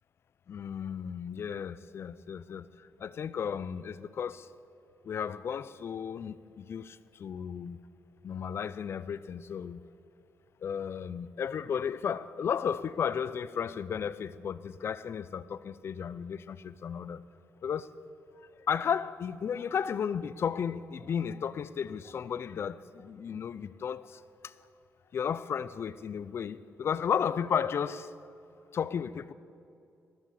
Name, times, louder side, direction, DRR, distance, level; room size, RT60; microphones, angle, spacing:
voice 1, 0.5-2.7 3.0-4.5 5.0-7.8 8.2-9.8 10.6-17.2 17.6-17.9 18.7-24.5 25.1-28.1 28.7-29.3, left 7 dB, 55° left, 0.4 m, -34 dB
12.0 x 7.2 x 8.3 m
cardioid pair, 90°, 5 cm